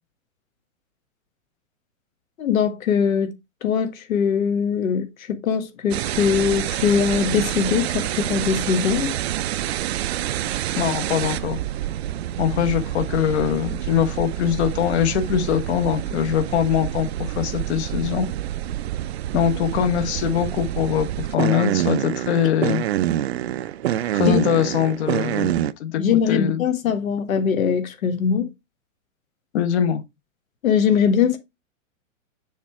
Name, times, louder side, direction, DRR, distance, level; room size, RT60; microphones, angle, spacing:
voice 1, 2.4-3.3 3.6-9.1 24.3-24.4 26.0-28.5 30.6-31.4, left 7 dB, 80° left, 1.5 m, -21 dB
sound 1, 5.9-25.7, right 12 dB, 50° right, 0.5 m, -27 dB
voice 2, 10.8-11.6 12.4-18.3 19.3-22.8 24.1-26.6 29.5-30.0, left 9 dB, 55° left, 1.1 m, -22 dB
6.5 x 3.4 x 4.6 m
hypercardioid pair, 155°, 40 cm